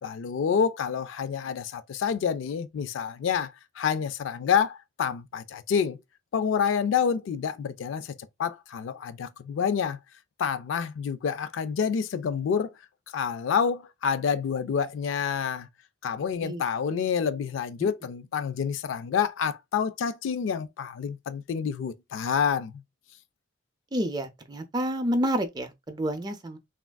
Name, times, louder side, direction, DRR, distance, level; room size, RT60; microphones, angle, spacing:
voice 1, 0.0-6.0 6.3-8.1 8.4-10.0 10.4-12.7 13.1-15.7 16.0-22.8, left 7 dB, 75° left, 0.3 m, -28 dB
voice 2, 23.9-26.6, equal, 20° right, 0.4 m, -29 dB
3.3 x 2.4 x 2.2 m
head